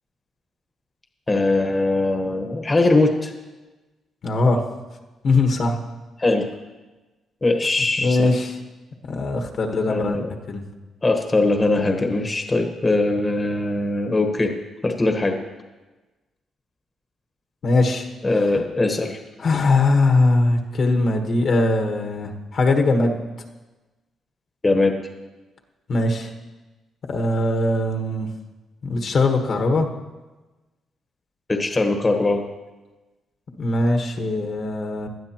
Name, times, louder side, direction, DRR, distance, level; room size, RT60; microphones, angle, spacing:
voice 1, 1.3-3.3 6.2-6.5 7.4-8.3 9.9-10.3 11.0-14.5 14.8-15.4 18.2-19.2 24.6-25.0 31.5-32.4, left 2 dB, 20° left, 4 dB, 1.2 m, -21 dB
voice 2, 4.2-4.6 5.2-5.8 8.0-8.6 9.0-10.2 10.5-10.6 17.6-18.1 18.3-18.5 19.4-23.2 25.9-26.3 27.1-28.3 28.8-29.9 33.6-35.1, left 2 dB, 50° left, 3 dB, 1.3 m, -20 dB
18.5 x 12.0 x 3.0 m, 1.2 s
cardioid pair, 110°, 0 cm